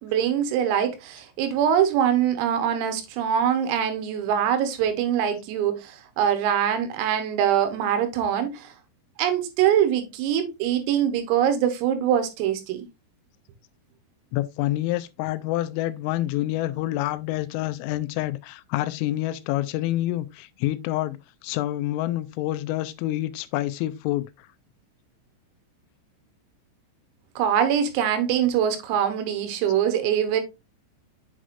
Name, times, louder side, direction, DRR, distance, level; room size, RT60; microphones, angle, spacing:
voice 1, 0.0-8.7 9.2-12.9 27.4-30.4, right 9 dB, 85° right, 3.8 m, -23 dB
voice 2, 14.3-24.5, left 15 dB, 85° left, 3.1 m, -27 dB
7.6 x 6.1 x 2.5 m
omnidirectional pair, 5.9 m